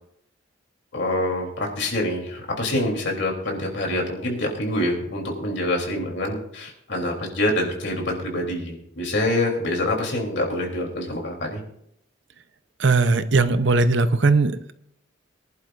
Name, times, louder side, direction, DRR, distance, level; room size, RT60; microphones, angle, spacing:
voice 1, 0.9-11.6, left 1 dB, 60° left, 0 dB, 3.3 m, -26 dB
voice 2, 12.8-14.7, right 3 dB, 65° right, 11 dB, 0.8 m, -19 dB
23.5 x 11.0 x 2.6 m, 0.72 s
head